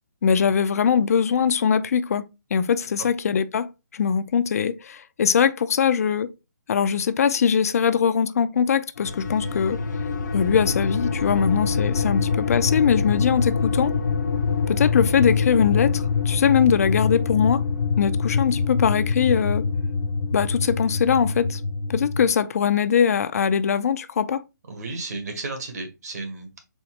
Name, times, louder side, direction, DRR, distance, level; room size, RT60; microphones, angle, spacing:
voice 1, 0.2-2.2 2.5-6.3 6.7-9.8 10.3-13.9 14.7-17.6 18.0-19.6 20.3-21.6 21.9-24.4, left 7 dB, 55° left, 0.4 m, -21 dB
sound 1, 9.0-22.3, left 5 dB, 75° left, 0.8 m, -25 dB
voice 2, 24.7-26.6, right 3 dB, 60° right, 1.7 m, -33 dB
4.3 x 3.5 x 3.2 m
hypercardioid pair, 160°, 10 cm